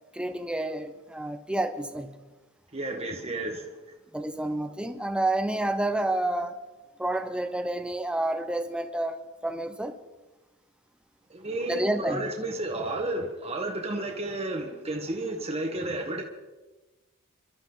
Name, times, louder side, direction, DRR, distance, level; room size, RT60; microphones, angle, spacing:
voice 1, 0.1-2.2 4.1-6.6 7.0-9.9 11.7-12.3, right 1 dB, 5° right, 1.0 m, -29 dB
voice 2, 2.7-3.7 11.3-16.2, right 1 dB, 30° right, 1.6 m, -32 dB
27.5 x 12.5 x 4.0 m
head